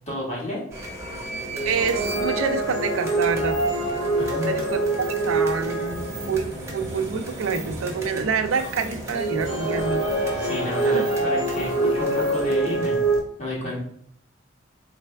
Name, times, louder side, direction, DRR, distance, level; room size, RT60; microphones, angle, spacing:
voice 1, 0.1-0.6 4.2-4.6 10.4-13.0 13.4-13.8, left 1 dB, 35° left, -4 dB, 1.7 m, -30 dB
sound 1, 0.7-13.2, right 1 dB, 15° right, 0.8 m, -35 dB
sound 2, 1.5-6.6 9.1-13.2, right 2 dB, 70° left, 1.8 m, -25 dB
voice 2, 1.7-3.6 4.4-10.0 10.9-11.1, right 5 dB, 85° right, 7 dB, 0.5 m, -27 dB
4.2 x 3.2 x 3.3 m, 0.66 s
head